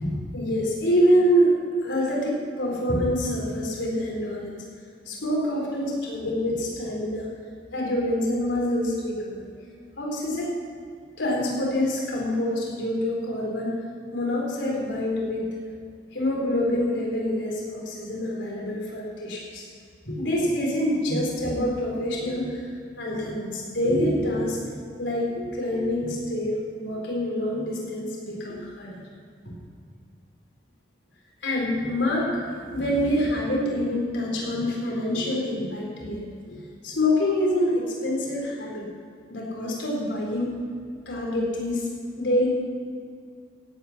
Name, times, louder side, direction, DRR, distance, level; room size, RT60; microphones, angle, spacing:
voice 1, 0.0-1.6 1.8-4.6 5.1-7.3 7.7-9.4 10.0-10.5 11.2-13.8 14.1-15.5 16.1-19.7 20.0-24.6 25.0-29.0 31.4-36.2 36.5-38.8 39.3-40.6 41.1-41.9 42.2-42.5, equal, 85° left, -2 dB, 4.2 m, -26 dB
16.5 x 9.1 x 6.0 m, 2.3 s
head